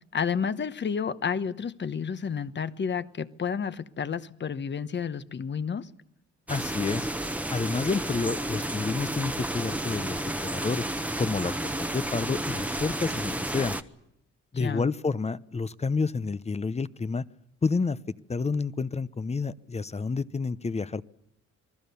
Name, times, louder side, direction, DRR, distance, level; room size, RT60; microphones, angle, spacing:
voice 1, 0.1-5.9 14.5-14.9, left 6 dB, 35° left, 1.1 m, -31 dB
voice 2, 6.5-7.1 7.5-10.9 11.2-11.5 11.9-13.8 14.5-17.2 17.6-18.0 18.3-21.1, left 4 dB, 20° left, 0.8 m, -29 dB
sound 1, 6.5-13.8, right 1 dB, 5° right, 1.1 m, -31 dB
27.5 x 20.0 x 7.0 m
cardioid pair, 90°, 30 cm